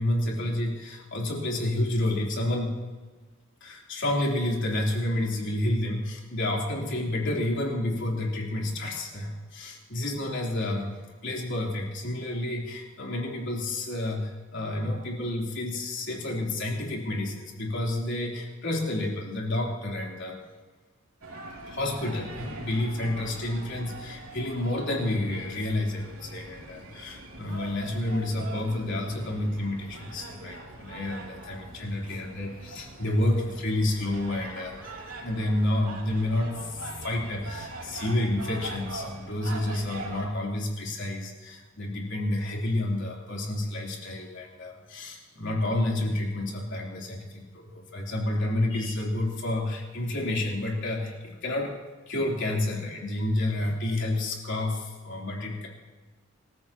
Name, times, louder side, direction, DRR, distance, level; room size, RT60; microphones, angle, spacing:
voice 1, 0.0-2.8 3.6-20.4 21.7-51.7 52.1-55.7, left 1 dB, 60° left, -2 dB, 3.5 m, -30 dB
sound 1, 21.2-40.3, right 2 dB, 85° right, 3.0 m, -42 dB
26.5 x 14.5 x 3.0 m, 1.3 s
head